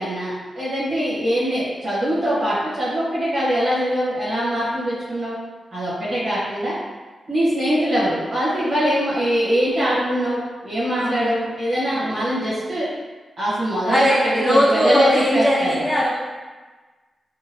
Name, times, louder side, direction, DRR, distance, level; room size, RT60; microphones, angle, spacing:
voice 1, 0.0-5.4 5.7-6.7 7.3-12.9 13.4-15.8, equal, 60° right, -11 dB, 1.0 m, -22 dB
voice 2, 10.9-11.4 11.9-12.3 13.9-16.1, equal, 5° right, -13 dB, 1.5 m, -20 dB
2.8 x 2.3 x 2.7 m, 1.3 s
cardioid pair, 65°, 0 cm